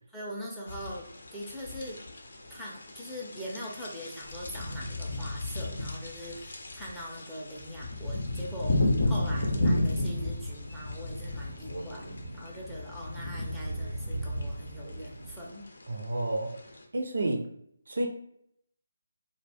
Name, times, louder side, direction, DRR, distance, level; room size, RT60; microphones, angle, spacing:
voice 1, 0.1-1.0 1.3-2.0 2.5-15.6, equal, ahead, -6 dB, 0.5 m, -42 dB
sound 1, 0.7-16.8, left 1 dB, 60° left, 0.5 m, -33 dB
Crow, 9.1-15.5, right 1 dB, 90° right, 0.9 m, -41 dB
voice 2, 15.9-16.5 16.9-17.5 17.9-18.1, right 2 dB, 60° right, 3 dB, 0.5 m, -30 dB
2.3 x 2.1 x 3.3 m, 0.71 s
figure-of-eight pair, 150°, 0 cm